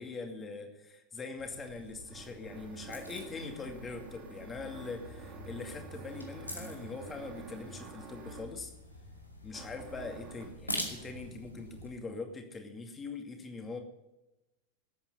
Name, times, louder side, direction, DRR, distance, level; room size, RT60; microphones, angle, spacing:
voice 1, 0.0-8.7 9.4-13.8, left 4 dB, 20° left, 5 dB, 2.4 m, -42 dB
sound 1, 1.4-11.9, equal, 90° left, 2.3 m, -45 dB
sound 2, 1.4-8.6 9.5-10.6, right 4 dB, 35° right, 3.4 m, -49 dB
19.5 x 8.8 x 5.6 m, 1.0 s
figure-of-eight pair, 90°, 0 cm